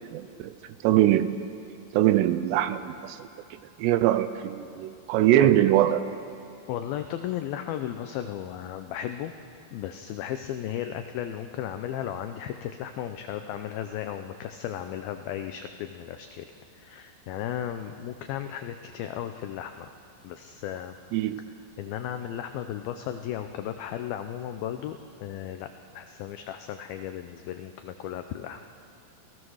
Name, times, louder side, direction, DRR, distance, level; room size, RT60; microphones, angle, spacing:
voice 1, 0.1-0.5 0.8-1.4 1.9-3.3 3.8-6.0 21.1-21.4, right 13 dB, 80° right, 12 dB, 2.7 m, -22 dB
voice 2, 6.7-9.3 9.7-16.5 16.7-19.9 20.2-20.9 21.8-28.6, left 10 dB, 90° left, 8 dB, 2.1 m, -35 dB
28.0 x 16.5 x 6.4 m, 2.6 s
omnidirectional pair, 5.1 m